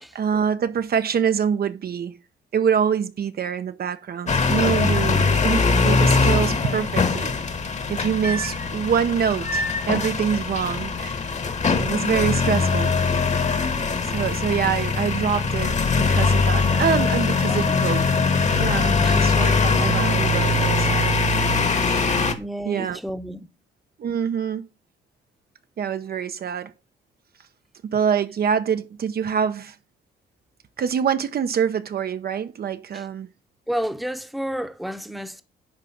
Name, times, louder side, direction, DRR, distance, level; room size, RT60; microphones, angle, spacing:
voice 1, 0.1-2.2 2.5-7.3 7.9-11.3 11.7-12.9 14.0-18.2 18.6-21.2 21.9-22.3 22.7-23.0 24.0-24.7 25.8-26.7 27.8-29.8 30.8-33.3, right 7 dB, 50° right, 0.7 m, -25 dB
sound 1, 4.3-22.3, left 4 dB, 35° left, 1.3 m, -21 dB
voice 2, 4.8-5.2 17.5-17.8 19.0-19.6 22.4-23.5 32.9-33.0 33.7-35.4, equal, ahead, 0.9 m, -31 dB
10.5 x 3.6 x 5.8 m
cardioid pair, 90°, 20 cm